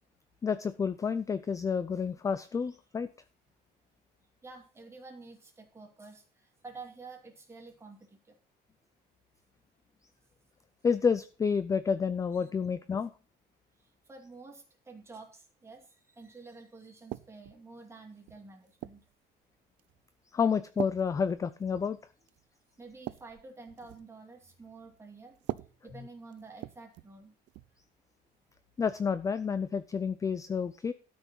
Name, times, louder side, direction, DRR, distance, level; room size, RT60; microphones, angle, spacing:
voice 1, 0.4-3.1 10.8-13.1 20.3-22.0 28.8-30.9, left 6 dB, 15° left, 13 dB, 0.4 m, -29 dB
voice 2, 4.4-8.4 12.4-12.5 13.8-19.0 22.8-27.3, right 3 dB, 15° right, 2 dB, 2.5 m, -50 dB
sound 1, 17.1-17.6 18.3-19.1 19.8-20.1 20.8-22.0 22.3-22.4 22.8-24.1 25.4-27.2 27.5-27.8 28.8-29.0, right 16 dB, 75° right, 0.6 m, -42 dB
13.0 x 6.1 x 5.6 m, 0.38 s
cardioid pair, 175°, 19 cm